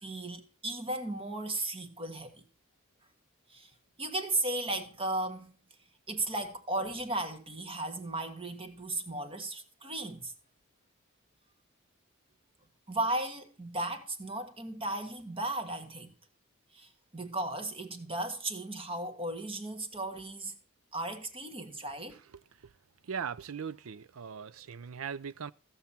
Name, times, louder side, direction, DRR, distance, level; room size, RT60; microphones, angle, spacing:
voice 1, 0.0-2.4 3.5-3.7 4.0-5.5 6.1-10.3 12.9-16.1 16.7-20.5 20.9-22.2, right 2 dB, 25° right, 1.5 m, -35 dB
voice 2, 23.0-25.5, right 6 dB, 70° right, 0.5 m, -39 dB
15.0 x 7.0 x 4.3 m
head